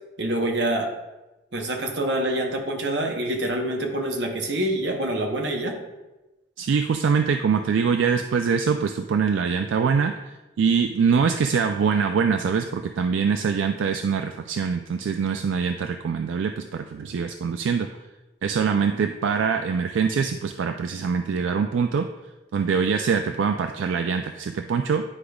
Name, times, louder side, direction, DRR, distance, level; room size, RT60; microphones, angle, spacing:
voice 1, 0.2-1.0 1.5-5.8, right 1 dB, 65° right, 2 dB, 1.0 m, -26 dB
voice 2, 6.6-17.9 18.4-22.1 22.5-25.0, right 6 dB, 80° right, 6 dB, 0.3 m, -24 dB
9.7 x 4.9 x 2.3 m, 1.1 s
head